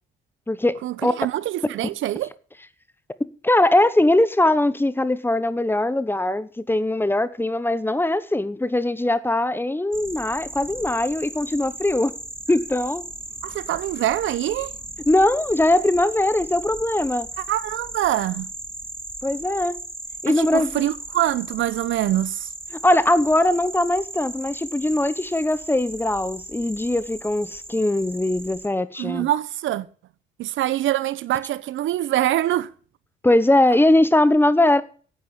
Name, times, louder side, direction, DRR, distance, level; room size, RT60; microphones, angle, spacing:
voice 1, 0.8-2.3 13.4-14.7 17.4-18.5 20.3-22.5 29.0-29.9 30.4-32.7, right 13 dB, 80° right, 0.8 m, -24 dB
voice 2, 3.4-12.1 12.5-13.0 15.1-17.3 19.2-19.7 20.2-20.8 22.8-29.3 33.2-34.8, left 1 dB, 10° left, 1.1 m, -20 dB
sound 1, 9.9-28.7, right 1 dB, 10° right, 2.7 m, -37 dB
11.0 x 8.8 x 8.1 m
cardioid pair, 90°, 20 cm